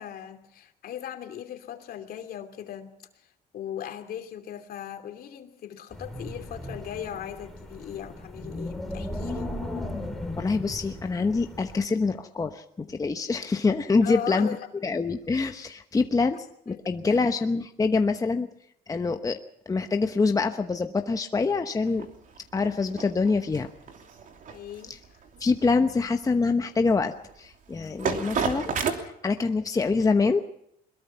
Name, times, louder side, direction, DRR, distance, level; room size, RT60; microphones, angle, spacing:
voice 1, 0.0-3.3 3.5-9.6 14.0-14.6 16.7-16.8 17.1-17.2 24.5-25.2, left 10 dB, 65° left, 6 dB, 2.8 m, -38 dB
Wind, 5.9-11.8, left 1 dB, ahead, 3.7 m, -36 dB
voice 2, 10.4-14.6 14.8-18.5 18.9-19.4 19.7-22.1 22.5-23.7 24.9-25.0 25.4-30.4, left 4 dB, 20° left, 6 dB, 1.0 m, -25 dB
sound 1, 21.9-28.9, right 6 dB, 50° right, 3.0 m, -32 dB
22.0 x 21.5 x 5.8 m, 0.74 s
cardioid pair, 110°, 17 cm